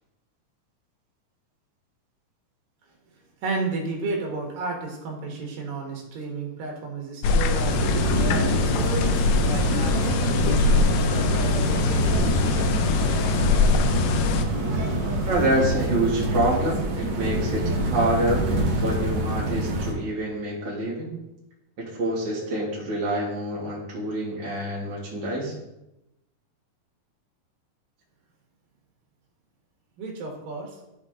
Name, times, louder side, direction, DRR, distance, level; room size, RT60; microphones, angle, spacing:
voice 1, 3.4-12.7 30.0-30.8, right 3 dB, 80° right, -1 dB, 3.2 m, -33 dB
sound 1, 7.2-14.4, left 4 dB, 85° left, 2.4 m, -23 dB
sound 2, 7.4-15.7, left 2 dB, 55° left, 2.5 m, -41 dB
sound 3, 7.6-19.9, right 1 dB, 55° right, 1.9 m, -26 dB
voice 2, 15.3-21.2 21.8-25.5, right 1 dB, 35° right, -5 dB, 2.7 m, -27 dB
13.5 x 4.7 x 3.8 m, 0.90 s
omnidirectional pair, 3.9 m